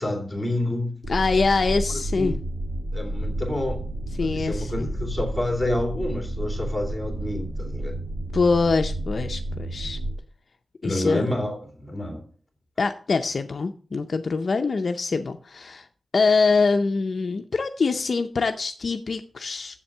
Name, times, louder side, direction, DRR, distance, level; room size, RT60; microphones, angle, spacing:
voice 1, 0.0-0.9 1.9-2.3 2.9-3.8 4.2-8.0 10.8-12.2, left 1 dB, ahead, 2.7 m, -29 dB
sound 1, 1.0-10.1, right 1 dB, 75° right, 2.3 m, -31 dB
voice 2, 1.1-2.3 4.2-4.9 8.3-10.0 10.8-11.3 12.8-15.9 16.1-19.8, left 4 dB, 50° left, 0.5 m, -24 dB
7.4 x 7.3 x 6.5 m
wide cardioid pair, 155°, 0 cm